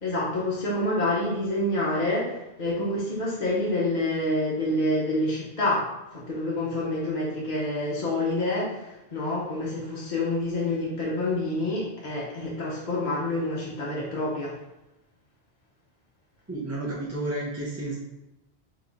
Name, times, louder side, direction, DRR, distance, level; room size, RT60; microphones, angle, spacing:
voice 1, 0.0-14.5, left 1 dB, 45° left, -6 dB, 0.9 m, -27 dB
voice 2, 16.5-18.0, right 2 dB, 15° right, -5 dB, 0.6 m, -31 dB
3.6 x 2.9 x 3.9 m, 0.94 s
omnidirectional pair, 1.1 m